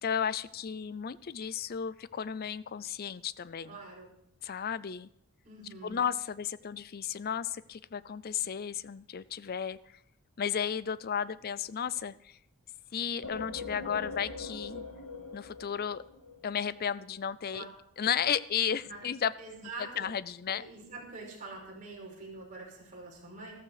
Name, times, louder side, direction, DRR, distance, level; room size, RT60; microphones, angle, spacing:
voice 1, 0.0-3.8 4.4-5.1 5.8-9.8 10.4-12.4 12.9-14.8 15.3-16.0 16.4-17.7 18.0-19.3 20.0-20.7, left 8 dB, 45° left, 18 dB, 0.4 m, -33 dB
voice 2, 3.7-4.1 5.4-6.0 17.5-17.7 18.8-19.0 19.4-20.1 20.5-23.5, right 2 dB, 35° right, -3 dB, 5.7 m, -45 dB
sound 1, 13.2-16.8, left 4 dB, 80° left, 1.9 m, -42 dB
14.0 x 13.5 x 4.9 m, 0.74 s
head